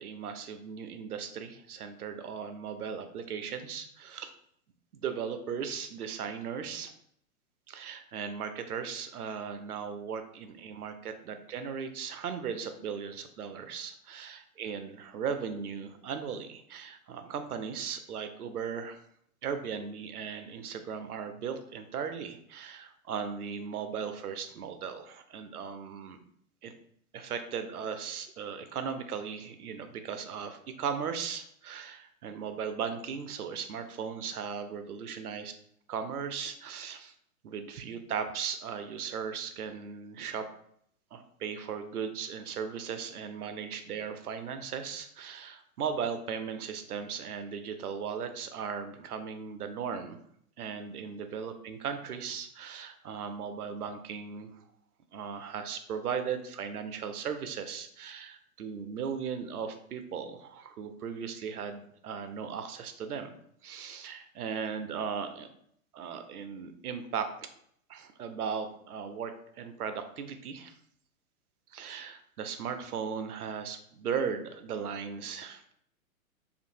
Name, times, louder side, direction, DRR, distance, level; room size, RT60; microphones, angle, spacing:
voice 1, 0.0-4.3 4.9-6.9 7.7-19.0 19.4-26.2 26.6-26.7 27.1-35.5 35.9-37.1 37.4-40.4 41.1-50.2 50.6-54.5 55.1-63.3 63.6-65.5 65.9-67.5 67.9-70.7 71.7-75.7, right 6 dB, 90° right, 8 dB, 0.5 m, -37 dB
2.6 x 2.5 x 2.6 m, 0.68 s
hypercardioid pair, 120°, 44 cm